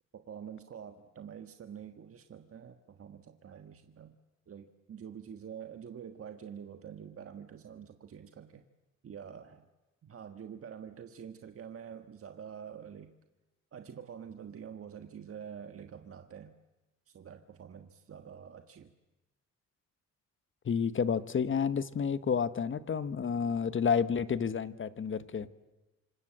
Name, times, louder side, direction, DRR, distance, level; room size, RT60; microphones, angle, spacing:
voice 1, 0.1-4.1 4.5-8.6 9.0-9.7 10.0-13.1 13.7-16.5 17.1-18.9, right 8 dB, 50° right, 7 dB, 1.5 m, -47 dB
voice 2, 20.6-25.5, left 6 dB, 40° left, 14 dB, 1.3 m, -30 dB
28.5 x 26.0 x 7.6 m, 1.1 s
cardioid pair, 90°, 30 cm